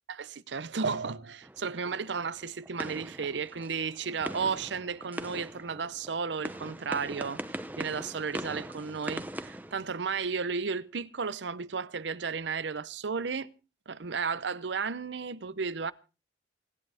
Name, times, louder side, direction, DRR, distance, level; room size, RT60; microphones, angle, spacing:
voice 1, 0.1-13.5 13.9-15.9, right 5 dB, 85° right, 0.7 m, -33 dB
sound 1, 1.4-10.5, right 1 dB, 10° right, 0.8 m, -41 dB
28.0 x 11.0 x 3.5 m
head